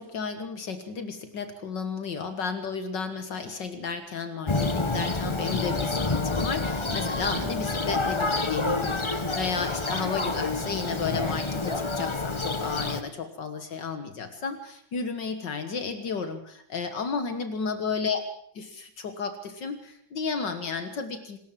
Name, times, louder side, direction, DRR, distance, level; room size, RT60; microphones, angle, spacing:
voice 1, 0.0-18.2 18.6-21.4, left 5 dB, 65° left, 9 dB, 2.1 m, -33 dB
Thunder, 4.5-13.0, left 3 dB, 20° left, 0.9 m, -28 dB
26.0 x 14.0 x 7.5 m, 0.67 s
omnidirectional pair, 2.1 m